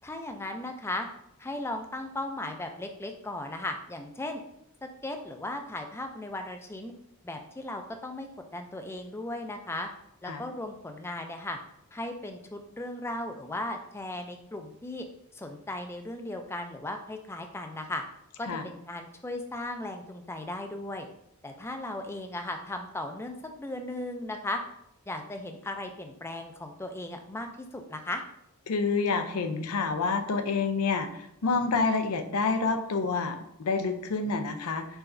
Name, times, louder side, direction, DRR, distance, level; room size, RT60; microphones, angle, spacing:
voice 1, 0.0-1.1 1.4-4.4 4.8-6.9 7.2-8.3 8.5-9.9 10.2-11.6 11.9-15.1 15.3-18.0 18.4-21.1 21.4-24.6 25.1-28.2, left 1 dB, 10° left, 5 dB, 0.4 m, -36 dB
voice 2, 28.7-34.9, left 4 dB, 80° left, 8 dB, 0.5 m, -28 dB
4.7 x 4.2 x 2.6 m, 0.76 s
head